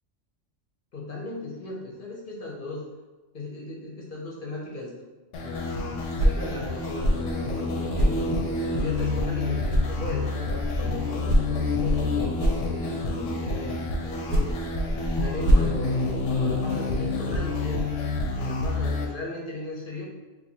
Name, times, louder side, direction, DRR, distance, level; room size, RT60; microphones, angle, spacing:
voice 1, 0.9-2.8 3.3-4.9 5.4-14.6 15.1-17.8 18.3-20.1, left 2 dB, 55° left, -3 dB, 0.7 m, -37 dB
sound 1, 5.3-19.1, left 3 dB, 85° left, 0.9 m, -28 dB
sound 2, 6.0-9.4 9.7-13.2 14.0-16.7, equal, 70° right, 0.8 m, -27 dB
2.9 x 2.2 x 4.2 m, 1.2 s
omnidirectional pair, 1.2 m